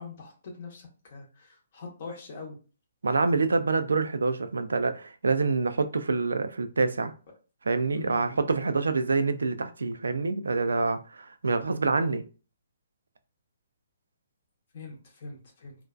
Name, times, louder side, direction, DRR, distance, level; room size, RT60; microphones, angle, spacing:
voice 1, 0.0-2.6 7.9-8.7 14.7-15.8, left 4 dB, 50° left, 0.7 m, -43 dB
voice 2, 3.0-7.1 7.7-12.2, right 4 dB, 80° right, 0.3 m, -26 dB
2.5 x 2.1 x 2.3 m
figure-of-eight pair, 135°, 0 cm